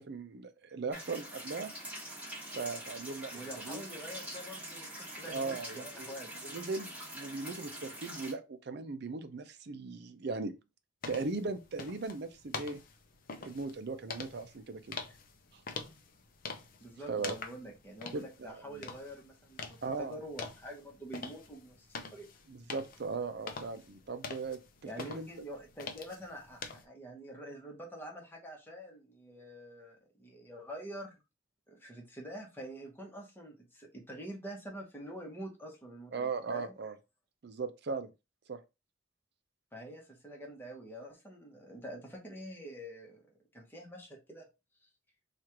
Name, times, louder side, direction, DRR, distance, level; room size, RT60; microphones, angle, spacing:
voice 1, 0.0-1.7 2.4-3.8 5.3-6.1 6.5-10.5 11.1-12.8 13.4-15.0 15.5-15.6 17.1-17.4 18.1-18.9 19.8-20.2 22.5-24.6 25.1-25.3 36.1-36.9 37.4-38.1 38.5-38.6, right 4 dB, 55° right, 0.5 m, -38 dB
sound 1, 0.9-8.3, right 1 dB, 5° right, 1.2 m, -44 dB
voice 2, 3.3-6.3 15.1-15.2 16.8-22.3 24.8-31.2 31.7-36.8 39.7-44.4, right 1 dB, 10° left, 1.0 m, -46 dB
sound 2, 11.0-26.8, left 4 dB, 45° left, 0.5 m, -46 dB
3.1 x 2.5 x 4.3 m
head